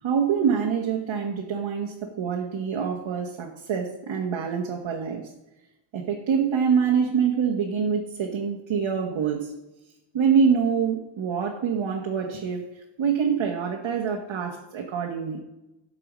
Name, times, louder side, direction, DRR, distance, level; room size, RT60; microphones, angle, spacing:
voice 1, 0.0-5.3 5.9-9.5 10.1-12.6 13.0-15.4, right 6 dB, 80° right, 1 dB, 1.4 m, -25 dB
12.0 x 4.9 x 7.3 m, 0.98 s
cardioid pair, 70°, 46 cm